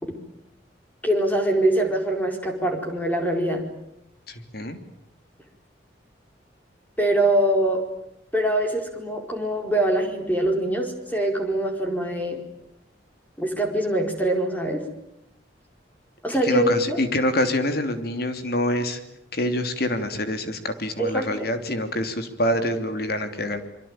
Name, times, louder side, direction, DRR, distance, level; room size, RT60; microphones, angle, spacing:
voice 1, 1.0-3.6 7.0-7.8 8.3-12.4 13.4-14.8 16.2-17.0 21.0-21.5, right 1 dB, 10° left, 3 dB, 4.5 m, -23 dB
voice 2, 4.3-4.8 16.4-19.0 19.3-23.6, left 1 dB, 55° left, 7 dB, 3.1 m, -26 dB
26.0 x 24.5 x 9.0 m, 0.81 s
head